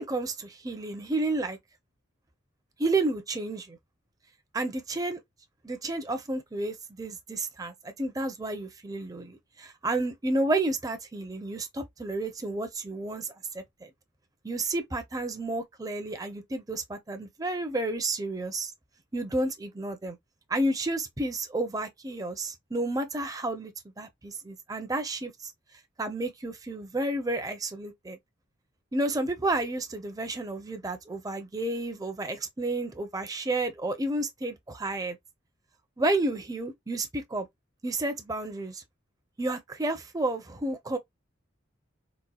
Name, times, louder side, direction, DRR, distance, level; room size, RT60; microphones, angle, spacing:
voice 1, 0.0-1.6 2.8-3.8 4.5-5.2 5.6-13.9 14.4-18.7 19.1-20.2 20.5-25.5 26.0-28.2 28.9-35.2 36.0-37.5 37.8-38.8 39.4-41.0, right 2 dB, 20° right, 0.5 m, -31 dB
4.1 x 2.2 x 2.2 m
head